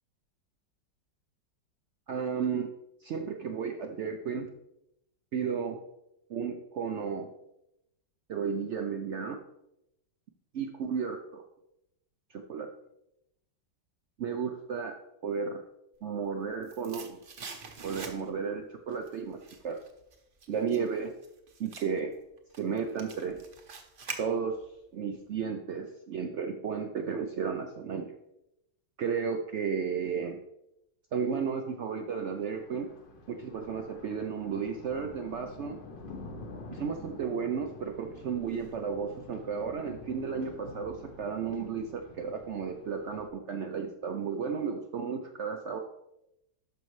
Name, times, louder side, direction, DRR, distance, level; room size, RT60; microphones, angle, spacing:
voice 1, 2.1-2.7 3.0-4.5 5.3-5.8 6.3-7.3 8.3-9.4 10.5-11.5 12.3-12.7 14.2-15.0 15.2-15.6 16.0-17.2 17.8-19.8 20.5-21.1 21.6-22.1 22.6-23.4 24.2-24.6 24.9-28.2 29.0-30.4 31.1-32.9 33.3-35.8 36.7-45.8, right 6 dB, 85° right, 5 dB, 0.6 m, -33 dB
sound 1, 16.1-18.5 18.9-24.8 25.1-25.2, right 4 dB, 45° right, 0.7 m, -45 dB
Thunder, 32.1-43.3, left 2 dB, 55° left, 0.6 m, -48 dB
12.5 x 5.3 x 3.1 m, 0.85 s
omnidirectional pair, 1.9 m